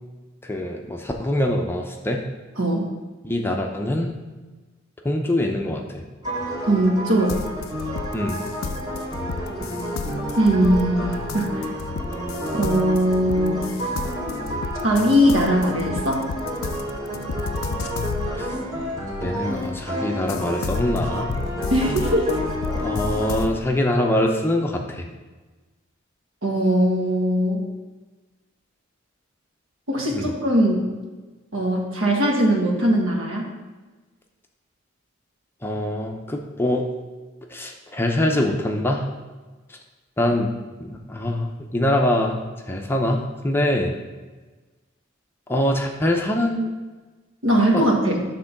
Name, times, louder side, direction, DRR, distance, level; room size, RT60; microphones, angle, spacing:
voice 1, 0.4-2.3 3.2-4.2 5.0-6.0 8.1-8.4 18.4-18.6 19.2-21.3 22.7-25.1 30.1-30.3 35.6-36.9 37.5-39.1 39.7-39.8 40.2-40.5 40.8-43.9 45.5-46.7 47.7-47.8, left 1 dB, 10° left, 1 dB, 0.5 m, -24 dB
sound 1, 6.2-23.4, equal, 20° right, 2.0 m, -30 dB
voice 2, 6.7-7.4 10.4-11.6 12.5-13.7 14.8-16.3 21.7-22.4 26.4-27.6 29.9-30.8 31.5-33.5 47.4-48.2, equal, 75° right, -1 dB, 1.5 m, -20 dB
sound 2, 7.3-19.9 20.3-23.6, left 5 dB, 90° left, 0.4 m, -32 dB
7.6 x 3.7 x 5.9 m, 1.3 s
head